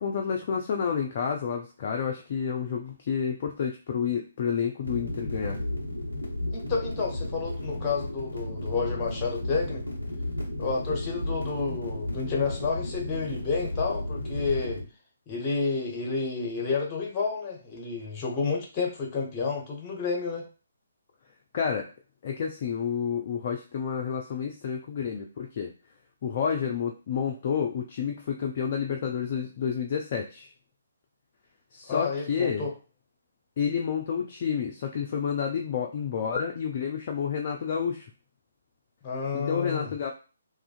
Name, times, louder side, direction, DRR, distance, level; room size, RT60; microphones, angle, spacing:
voice 1, 0.0-5.6 21.5-21.9 22.2-25.7 26.2-30.5 31.7-32.7 33.6-38.1 39.3-40.1, left 7 dB, 35° left, 2 dB, 0.3 m, -30 dB
sound 1, 4.8-14.8, left 1 dB, 80° right, 1.2 m, -33 dB
voice 2, 6.5-9.8 10.6-14.8 15.3-20.4 31.9-32.7 39.0-39.9, left 4 dB, 20° left, 0 dB, 0.8 m, -30 dB
2.4 x 2.4 x 2.4 m, 0.34 s
figure-of-eight pair, 135°, 0 cm